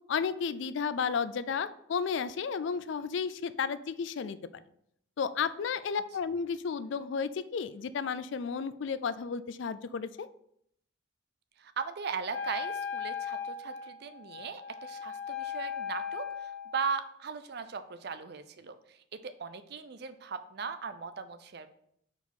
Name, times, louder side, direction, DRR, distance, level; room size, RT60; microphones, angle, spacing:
voice 1, 0.1-4.6 5.2-10.3, left 6 dB, 65° left, 14 dB, 0.3 m, -33 dB
voice 2, 11.6-21.7, right 5 dB, 50° right, 11 dB, 0.5 m, -38 dB
Wind instrument woodwind instrument, 12.3-16.8, left 7 dB, 80° left, 1.0 m, -38 dB
4.8 x 4.2 x 5.3 m, 0.71 s
head